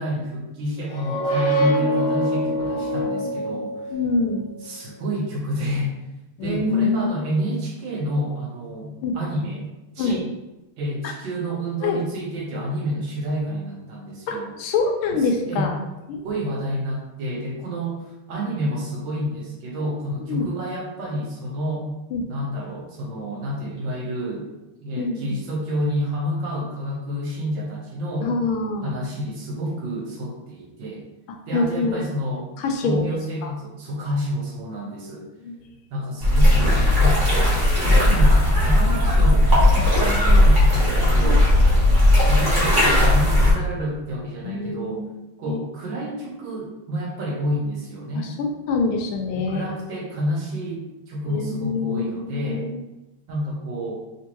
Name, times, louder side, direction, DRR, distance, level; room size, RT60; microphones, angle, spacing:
voice 1, 0.0-3.9 4.6-5.9 6.4-9.7 9.9-10.3 10.8-14.5 15.1-15.7 16.2-21.9 22.3-24.5 24.8-28.3 28.8-31.0 31.5-32.5 32.8-35.3 35.9-41.6 42.1-45.0 45.4-48.3 49.3-52.7 53.3-54.0, equal, 70° right, -2 dB, 1.5 m, -29 dB
sound 1, 0.9-4.4, equal, 65° left, 1.3 m, -24 dB
voice 2, 3.9-4.5 6.4-7.1 9.0-9.2 10.0-10.2 11.0-11.1 11.8-12.0 14.3-15.7 16.1-16.4 20.3-20.5 22.1-22.2 25.0-25.4 28.2-28.9 31.5-32.0 32.6-33.0 33.4-33.5 35.4-35.6 41.3-41.4 44.4-45.1 45.5-45.6 48.1-48.3 48.7-49.7 51.3-52.8, left 4 dB, 90° left, 3 dB, 1.5 m, -25 dB
sound 2, 36.2-43.5, left 1 dB, 20° right, 0.7 m, -16 dB
3.5 x 3.1 x 2.9 m, 0.98 s
omnidirectional pair, 2.3 m